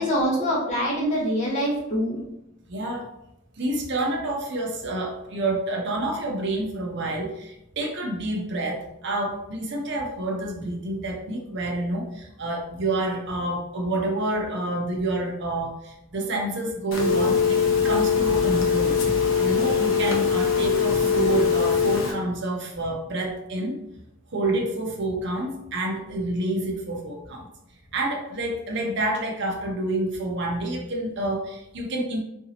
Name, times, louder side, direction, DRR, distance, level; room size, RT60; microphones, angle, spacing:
voice 1, 0.0-2.2, equal, 35° left, -5 dB, 1.2 m, -24 dB
voice 2, 2.7-3.1 3.6-19.0 19.4-23.8 24.3-27.5 27.9-32.2, right 2 dB, 60° right, 1 dB, 0.6 m, -28 dB
Telephone, 16.9-22.1, left 6 dB, 75° left, 0.7 m, -22 dB
3.9 x 2.6 x 2.8 m, 0.84 s
head